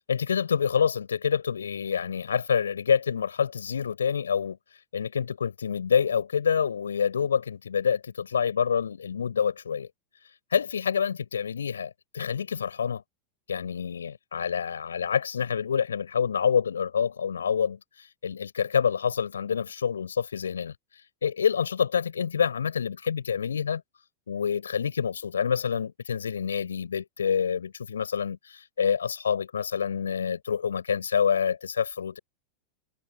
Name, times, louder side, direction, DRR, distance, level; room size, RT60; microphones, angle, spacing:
voice 1, 0.1-4.6 4.9-9.9 10.5-13.0 13.5-17.8 18.2-20.7 21.2-23.8 24.3-32.2, left 7 dB, 70° left, 4.6 m, -27 dB
figure-of-eight pair, 90°, 0 cm